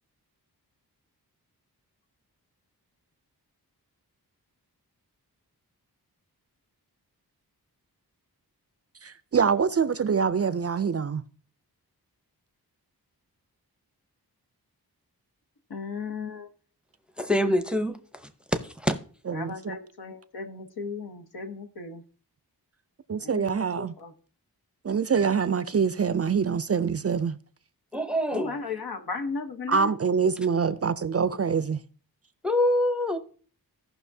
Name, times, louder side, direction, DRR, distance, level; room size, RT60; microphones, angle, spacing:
voice 1, 9.0-11.2 19.3-19.8 23.1-23.9 24.8-27.4 29.7-31.8, right 6 dB, 40° right, 0.4 m, -25 dB
voice 2, 15.7-16.5 19.3-22.0 23.2-23.6 24.0-24.1 28.3-29.9, left 4 dB, 75° left, 1.2 m, -35 dB
voice 3, 17.2-18.0 18.5-19.0 27.9-28.6 32.4-33.2, left 1 dB, 5° right, 0.7 m, -25 dB
16.0 x 5.8 x 2.7 m
wide cardioid pair, 105°, 38 cm